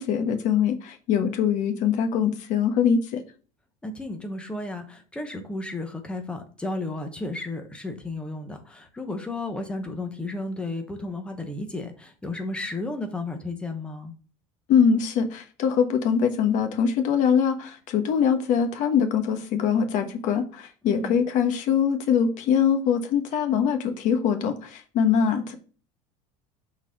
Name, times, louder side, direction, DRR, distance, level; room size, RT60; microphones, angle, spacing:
voice 1, 0.0-3.2 14.7-25.5, left 7 dB, 50° left, 6 dB, 1.3 m, -23 dB
voice 2, 3.8-14.1 20.8-21.2, left 2 dB, 5° left, 5 dB, 1.0 m, -33 dB
6.3 x 4.1 x 4.9 m, 0.38 s
cardioid pair, 150°, 16 cm